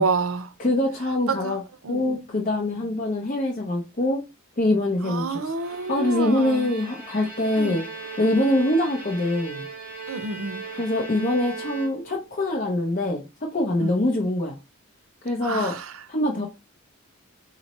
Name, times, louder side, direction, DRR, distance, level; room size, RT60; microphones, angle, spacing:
voice 1, 0.0-0.5 1.3-1.6 1.8-2.4 2.7-2.8 5.0-6.7 7.6-7.8 8.3-8.4 10.1-10.7 13.8-14.1 15.4-15.9, right 4 dB, 85° right, 0.6 m, -29 dB
voice 2, 0.6-1.6 1.9-4.2 4.6-7.8 8.2-9.6 10.8-14.6 15.2-15.8 16.1-16.5, left 1 dB, 40° left, 0.7 m, -24 dB
Bowed string instrument, 5.4-12.4, right 3 dB, 10° right, 1.8 m, -38 dB
4.1 x 3.1 x 4.1 m
head